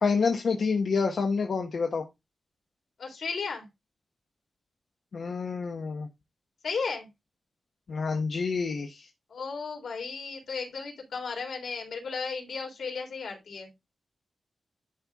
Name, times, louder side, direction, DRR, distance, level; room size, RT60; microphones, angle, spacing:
voice 1, 0.0-2.0 5.1-6.1 7.9-9.1, left 5 dB, 60° left, 2 dB, 1.1 m, -28 dB
voice 2, 3.0-3.7 6.6-7.1 9.3-13.7, left 5 dB, 90° left, 0 dB, 3.6 m, -34 dB
11.0 x 4.4 x 3.5 m, 0.21 s
wide cardioid pair, 175°, 0 cm